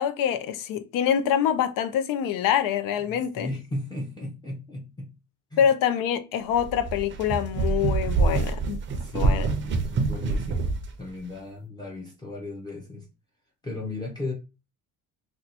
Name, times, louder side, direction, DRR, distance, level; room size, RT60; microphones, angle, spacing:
voice 1, 0.0-3.5 5.6-8.8 9.1-9.5, left 9 dB, 85° left, 0.6 m, -25 dB
voice 2, 3.0-5.1 5.5-5.7 8.8-13.1 13.6-14.3, left 2 dB, 15° left, 0.6 m, -36 dB
sound 1, 6.5-10.9, right 4 dB, 35° right, 0.5 m, -26 dB
2.8 x 2.2 x 4.0 m
cardioid pair, 160°, 32 cm